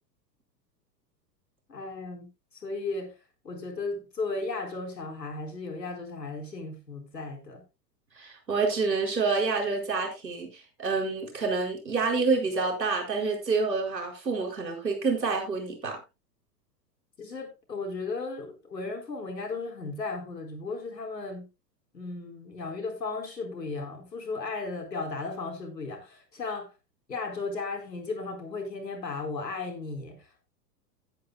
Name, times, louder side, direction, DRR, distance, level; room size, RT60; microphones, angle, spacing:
voice 1, 1.7-2.3 2.5-3.1 3.4-7.6 17.2-21.5 21.9-26.7 27.1-30.4, left 3 dB, 80° left, 4.3 m, -35 dB
voice 2, 8.2-16.0, right 4 dB, 80° right, 4.7 m, -28 dB
16.5 x 9.6 x 2.2 m
figure-of-eight pair, 100°, 50 cm